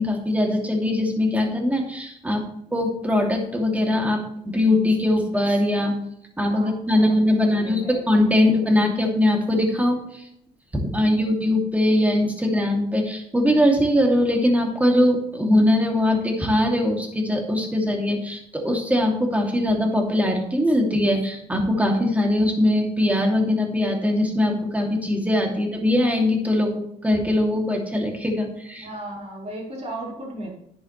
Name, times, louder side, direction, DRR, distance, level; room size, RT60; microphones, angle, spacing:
voice 1, 0.0-2.4 2.7-5.9 6.4-10.2 10.7-28.9, left 1 dB, 10° right, 1 dB, 2.7 m, -21 dB
voice 2, 6.9-8.0 8.4-8.7 28.7-30.5, right 1 dB, 40° right, -3 dB, 4.9 m, -36 dB
11.0 x 10.5 x 3.3 m, 0.73 s
cardioid pair, 110°, 17 cm